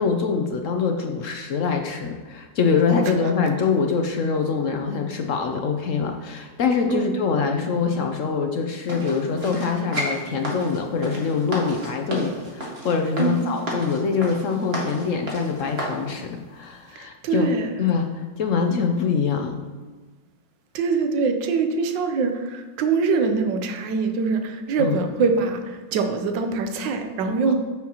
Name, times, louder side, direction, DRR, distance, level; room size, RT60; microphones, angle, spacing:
voice 1, 0.0-17.5 17.8-19.5 24.8-25.0 27.5-27.6, left 5 dB, 70° left, 4 dB, 0.7 m, -24 dB
sound 1, 8.9-16.0 16.5-16.6, right 1 dB, 35° right, 1.7 m, -32 dB
voice 2, 17.0-17.7 20.7-27.5, right 4 dB, 75° right, 6 dB, 1.5 m, -23 dB
9.4 x 7.5 x 3.0 m, 1.4 s
omnidirectional pair, 2.0 m